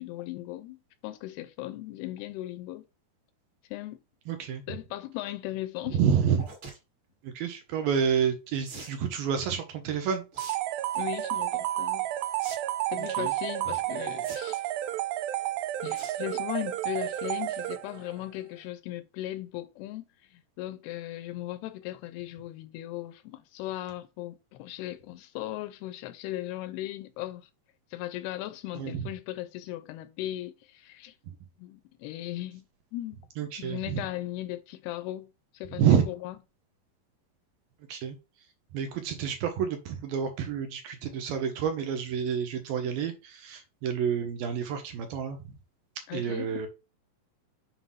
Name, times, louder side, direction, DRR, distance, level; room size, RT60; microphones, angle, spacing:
voice 1, 0.0-2.9 3.7-4.0 4.7-6.0 11.0-12.1 12.9-14.7 15.8-27.5 27.9-31.2 31.6-32.6 32.9-33.2 33.6-36.4 46.1-46.7, left 15 dB, 85° left, 2.4 m, -37 dB
voice 2, 4.3-4.6 5.9-6.4 7.2-10.2 13.0-13.3 28.8-29.0 33.4-34.0 35.7-36.0 37.9-38.2 38.7-45.4 46.1-46.7, right 7 dB, 75° right, 2.3 m, -29 dB
sound 1, 6.4-6.8 8.6-9.0 10.3-10.6 10.9-11.3 12.4-12.6 12.9-13.0 14.2-14.7 15.9-16.2 16.6-16.8 17.2-17.3 17.5-17.6, right 3 dB, 45° right, 1.9 m, -43 dB
sound 2, 10.4-18.1, right 14 dB, 90° right, 2.1 m, -31 dB
7.4 x 2.6 x 5.5 m
omnidirectional pair, 4.8 m